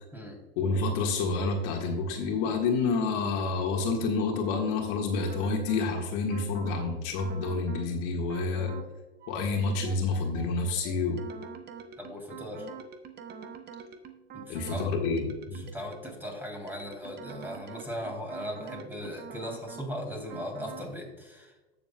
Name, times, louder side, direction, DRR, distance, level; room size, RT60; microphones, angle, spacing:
voice 1, 0.6-8.7 9.3-11.3 14.5-15.6, left 4 dB, 55° left, 1 dB, 1.6 m, -28 dB
sound 1, 5.2-5.9 6.3-6.9 7.2-7.9 8.3-8.9 9.2-16.3 16.7-19.9 20.3-20.9, right 6 dB, 30° right, 1.0 m, -45 dB
voice 2, 12.0-12.7 14.3-14.9 15.6-21.5, equal, 5° right, 0 dB, 3.0 m, -38 dB
15.5 x 7.0 x 2.2 m, 1.1 s
hypercardioid pair, 105°, 33 cm